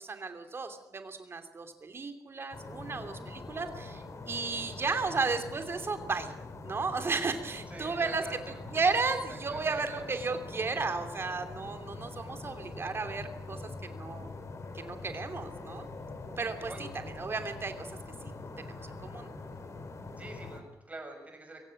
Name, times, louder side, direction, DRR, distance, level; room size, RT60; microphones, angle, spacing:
voice 1, 0.0-6.3 6.6-14.3 14.7-15.9 16.4-17.9 18.6-19.3, right 4 dB, 35° right, 8 dB, 3.0 m, -34 dB
sound 1, 2.5-20.6, left 3 dB, 45° left, 3.5 m, -44 dB
voice 2, 7.7-8.4 8.9-9.0 9.3-9.7 16.7-16.8 20.2-21.6, right 2 dB, 20° right, 4 dB, 6.7 m, -45 dB
23.5 x 16.5 x 9.9 m, 0.88 s
wide cardioid pair, 145°, 7 cm